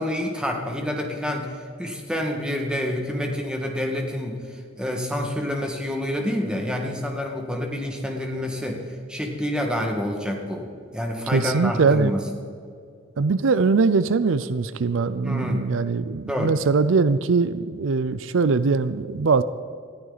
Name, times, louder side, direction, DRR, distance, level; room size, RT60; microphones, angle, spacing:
voice 1, 0.0-8.8 9.1-10.7 10.9-12.3 15.2-15.6 16.3-16.5, left 1 dB, 5° right, 2 dB, 1.8 m, -28 dB
voice 2, 11.3-12.1 13.2-19.4, right 4 dB, 75° right, 14 dB, 0.5 m, -21 dB
20.5 x 14.0 x 4.1 m, 2.3 s
head